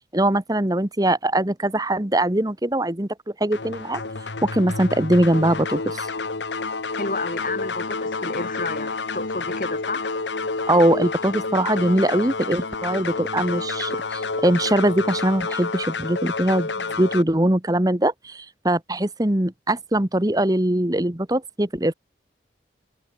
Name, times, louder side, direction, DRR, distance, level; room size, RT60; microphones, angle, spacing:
voice 1, 0.1-3.1 3.4-4.0 4.4-6.1 10.7-21.9, right 1 dB, 20° right, 1.4 m, -21 dB
sound 1, 3.5-17.2, left 3 dB, 85° left, 1.6 m, -29 dB
voice 2, 7.0-10.1, left 3 dB, 50° left, 3.2 m, -31 dB
head